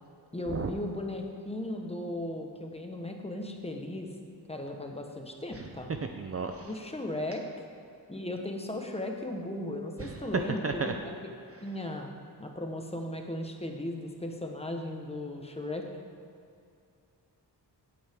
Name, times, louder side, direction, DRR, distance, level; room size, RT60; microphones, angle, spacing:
voice 1, 0.3-4.1 4.5-5.9 6.6-7.7 8.1-11.1 11.6-12.1 12.4-15.9, left 1 dB, 15° left, 2 dB, 1.0 m, -36 dB
voice 2, 6.2-6.7 10.0-10.3 10.6-10.9, right 4 dB, 35° right, 5 dB, 0.5 m, -34 dB
17.0 x 8.7 x 3.6 m, 2.4 s
wide cardioid pair, 140°, 43 cm